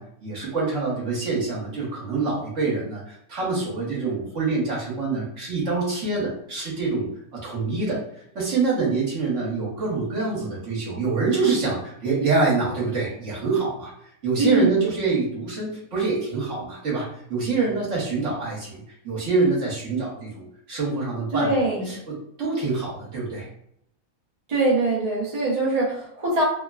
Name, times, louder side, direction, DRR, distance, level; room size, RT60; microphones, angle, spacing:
voice 1, 0.0-8.0 8.3-13.9 14.2-23.5, right 4 dB, 65° right, -6 dB, 1.4 m, -26 dB
voice 2, 14.4-14.8 21.3-22.0 24.5-26.4, right 2 dB, 35° right, -5 dB, 0.8 m, -22 dB
3.1 x 2.1 x 2.3 m, 0.72 s
omnidirectional pair, 1.4 m